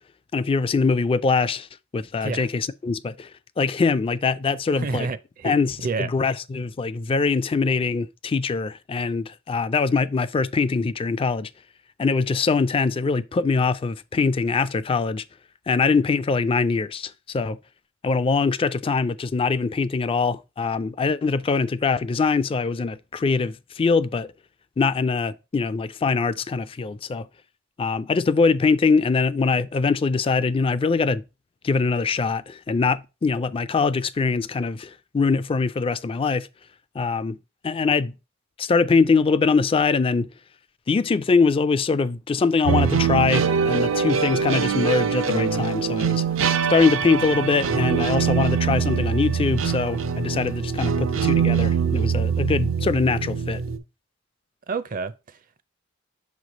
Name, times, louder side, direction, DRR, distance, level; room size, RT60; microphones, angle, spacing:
voice 1, 0.3-1.7 1.9-3.3 3.6-5.1 5.4-11.5 12.0-15.2 15.7-17.6 18.0-24.3 24.8-27.3 27.8-31.2 31.6-36.5 37.0-37.4 37.6-38.1 38.6-40.3 40.9-46.2 46.7-53.6, left 4 dB, 30° left, 0.3 m, -23 dB
voice 2, 4.8-5.5 5.8-6.1 54.7-55.1, right 4 dB, 45° right, 0.5 m, -28 dB
sound 1, 42.6-53.8, right 6 dB, 90° right, 0.7 m, -23 dB
6.3 x 3.2 x 5.1 m
head